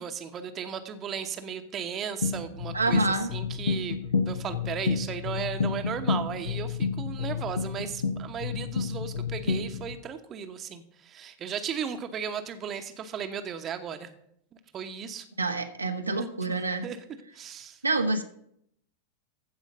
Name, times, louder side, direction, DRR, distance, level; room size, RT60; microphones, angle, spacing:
voice 1, 0.0-14.1 14.7-15.3 16.1-16.3 16.6-17.0 17.3-17.8, right 7 dB, 30° right, 7 dB, 1.0 m, -36 dB
sound 1, 2.2-9.9, left 5 dB, 65° left, 1.1 m, -30 dB
voice 2, 2.7-3.3 15.4-16.9 17.8-18.2, right 3 dB, 85° right, 3 dB, 1.1 m, -27 dB
14.5 x 5.0 x 6.6 m, 0.71 s
figure-of-eight pair, 90°, 0 cm